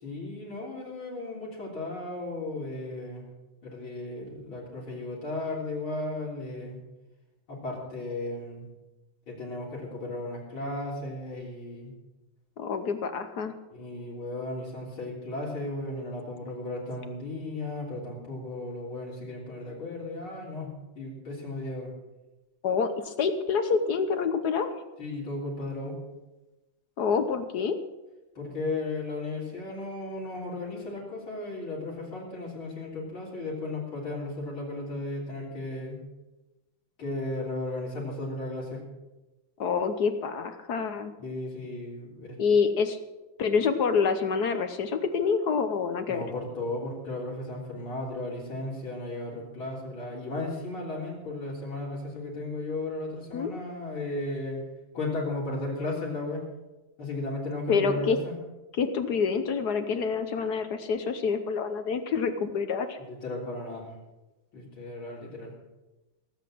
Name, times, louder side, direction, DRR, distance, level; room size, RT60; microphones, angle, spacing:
voice 1, 0.0-3.3 3.6-6.8 7.5-8.7 9.3-11.9 13.7-21.9 25.0-26.0 28.4-36.0 37.0-38.8 41.2-42.4 46.1-54.6 54.9-56.4 57.0-58.3 63.1-63.9 64.5-65.5, left 2 dB, 80° left, -6 dB, 4.3 m, -35 dB
voice 2, 12.6-13.5 22.6-24.7 27.0-27.8 39.6-41.1 42.4-43.0 43.4-46.2 53.3-53.5 57.7-58.2 58.8-63.0, left 5 dB, 60° left, 9 dB, 1.3 m, -27 dB
17.5 x 8.1 x 7.7 m, 1.1 s
omnidirectional pair, 2.2 m